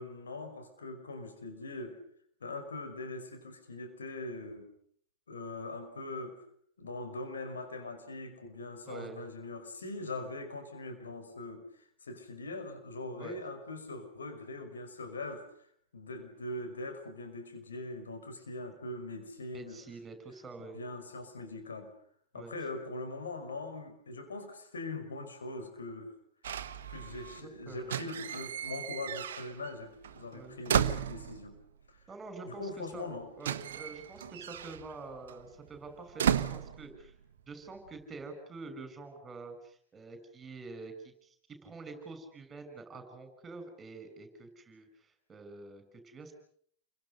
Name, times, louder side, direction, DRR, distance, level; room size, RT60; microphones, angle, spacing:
voice 1, 0.0-2.0 2.4-4.7 5.3-6.4 6.8-15.5 15.9-19.8 20.6-21.9 22.3-26.1 26.9-31.6 31.9-32.0 32.4-33.3, left 2 dB, 70° left, 6 dB, 5.5 m, -42 dB
voice 2, 8.9-9.2 13.2-13.4 19.5-20.8 22.3-22.5 27.4-27.9 30.3-30.6 32.1-37.1 37.5-46.3, right 3 dB, 20° right, 8 dB, 6.8 m, -47 dB
sound 1, 26.4-27.4 27.8-29.8 30.0-31.6 32.6-32.7 32.9-37.4 37.7-38.1, right 9 dB, 60° right, 1.3 m, -34 dB
29.5 x 24.0 x 6.7 m, 0.63 s
figure-of-eight pair, 90°, 0 cm